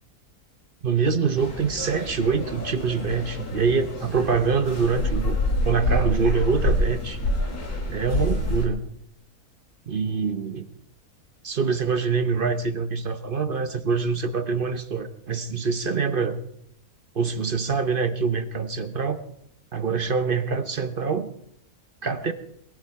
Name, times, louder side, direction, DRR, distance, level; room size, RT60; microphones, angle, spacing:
voice 1, 0.8-5.4 5.6-7.2 7.9-8.8 9.9-10.7 11.4-16.4 17.1-19.2 19.7-21.3 22.0-22.3, right 5 dB, 45° right, 10 dB, 0.9 m, -25 dB
sound 1, 1.4-8.7, left 1 dB, 85° left, 3.1 m, -27 dB
20.0 x 12.5 x 4.7 m, 0.72 s
omnidirectional pair, 1.6 m